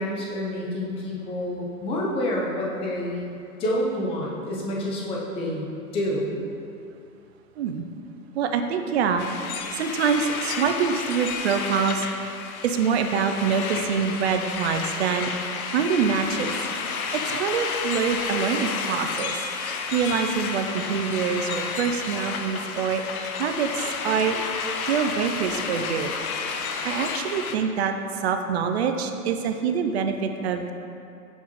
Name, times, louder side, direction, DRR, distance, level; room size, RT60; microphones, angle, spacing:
voice 1, 0.0-6.4, left 1 dB, 15° left, -3 dB, 0.5 m, -28 dB
voice 2, 8.3-9.2 9.7-12.1 12.6-15.3 15.7-16.5 17.1-19.3 19.9-24.4 24.9-26.1 26.8-30.7, right 6 dB, 45° right, 6 dB, 0.5 m, -25 dB
sound 1, 9.2-27.6, left 5 dB, 65° left, 0.7 m, -31 dB
7.3 x 5.3 x 3.0 m, 2.6 s
hypercardioid pair, 135°, 46 cm